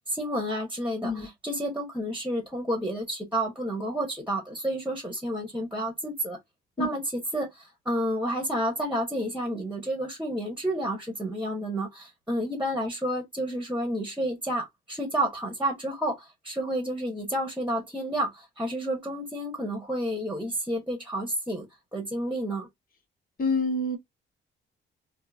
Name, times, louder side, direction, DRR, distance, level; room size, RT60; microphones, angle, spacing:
voice 1, 0.1-6.4 6.8-7.0 7.3-21.7 21.9-22.7, right 1 dB, 5° right, 1.3 m, -30 dB
voice 2, 23.4-24.0, left 2 dB, 45° left, 1.2 m, -26 dB
3.7 x 2.1 x 2.4 m
cardioid pair, 90°, 20 cm